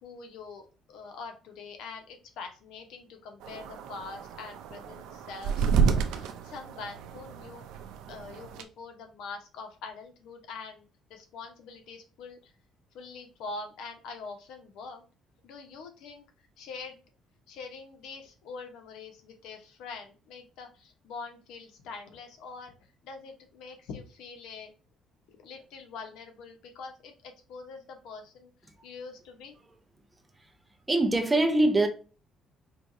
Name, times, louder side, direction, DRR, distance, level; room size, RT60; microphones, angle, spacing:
voice 1, 0.0-7.6 8.1-10.8 11.1-12.5 12.9-15.0 15.4-17.0 17.5-22.7 23.0-24.7 25.3-28.5 28.8-29.5, left 4 dB, 85° left, 1.0 m, -44 dB
sound 1, 3.4-8.6, right 6 dB, 90° right, 0.5 m, -30 dB
voice 2, 30.9-31.9, right 2 dB, 15° right, 0.6 m, -23 dB
4.5 x 3.0 x 2.6 m
cardioid pair, 140°, 0 cm